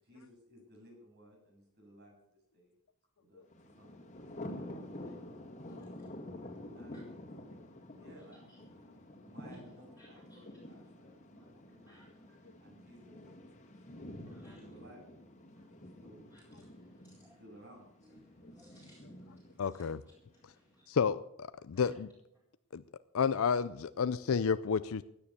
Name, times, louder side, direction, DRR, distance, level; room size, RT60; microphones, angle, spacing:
voice 1, 0.0-2.7 3.2-3.4 3.7-5.0 6.7-7.2 7.9-8.7 9.2-11.9 12.6-13.2 14.0-15.1 15.3-15.5 16.0-16.3 17.4-17.9, equal, 50° right, -1 dB, 7.9 m, -58 dB
Thunder, 3.5-20.5, left 1 dB, 35° left, 2.1 m, -49 dB
voice 2, 10.0-10.4 11.8-12.4 14.2-14.6 15.5-15.7 16.3-17.4 18.0-19.5 19.8-19.9 20.4-20.8 21.7-21.8, equal, 10° right, -6 dB, 4.1 m, -64 dB
voice 3, 19.6-20.0 20.9-22.1 22.7-22.8 23.1-25.0, left 6 dB, 70° left, 14 dB, 0.5 m, -31 dB
16.5 x 10.5 x 6.8 m, 0.80 s
head